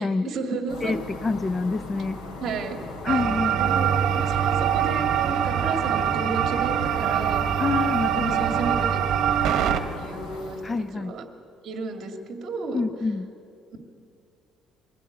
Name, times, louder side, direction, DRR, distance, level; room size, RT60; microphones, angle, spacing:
voice 1, 0.0-1.0 2.4-2.8 3.0-3.2 3.6-7.4 7.9-11.2 11.6-12.8, right 4 dB, 50° right, 5 dB, 2.2 m, -33 dB
sound 1, 0.7-10.9, left 3 dB, 85° left, 4.0 m, -38 dB
voice 2, 0.8-2.2 3.0-3.8 7.6-8.6 10.6-11.1 12.7-13.3, left 4 dB, 20° left, 14 dB, 0.5 m, -27 dB
sound 2, 3.1-9.8, right 9 dB, 65° right, 1.4 m, -23 dB
22.0 x 15.5 x 8.6 m, 2.6 s
cardioid pair, 140°, 0 cm